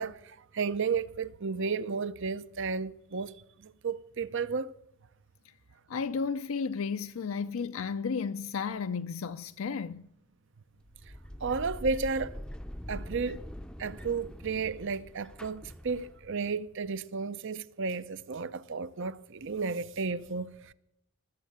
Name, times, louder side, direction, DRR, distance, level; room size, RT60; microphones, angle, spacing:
voice 1, 0.0-3.3 3.6-4.7 11.4-12.4 12.9-13.4 13.8-20.7, right 4 dB, 55° right, 0.6 m, -33 dB
voice 2, 5.9-10.1, left 5 dB, 65° left, 0.5 m, -33 dB
sound 1, 10.8-16.5, equal, 5° left, 0.6 m, -43 dB
19.5 x 7.4 x 8.7 m
head